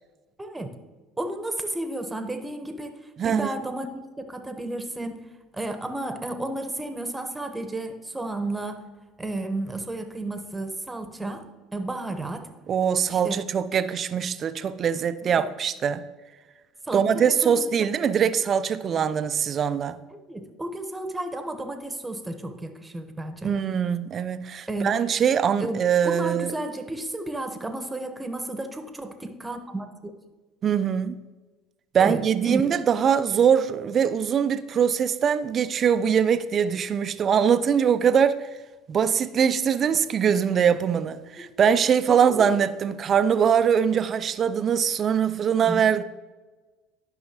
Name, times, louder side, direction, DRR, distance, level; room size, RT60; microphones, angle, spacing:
voice 1, 0.4-0.7 1.2-3.0 3.2-5.2 5.5-8.8 9.2-11.4 11.7-12.5 13.1-13.4 15.4-15.5 16.8-17.9 20.1-23.5 24.7-24.9 25.6-25.8 26.0-30.1 32.0-32.6 41.4-41.5 42.1-42.4 45.6-45.8, right 1 dB, 15° right, 1.1 m, -32 dB
voice 2, 3.2-3.6 12.7-16.1 16.9-20.0 23.4-26.5 30.6-31.2 31.9-38.5 38.9-46.0, right 7 dB, 45° right, 0.4 m, -22 dB
12.0 x 5.6 x 2.9 m
hypercardioid pair, 75°, 0 cm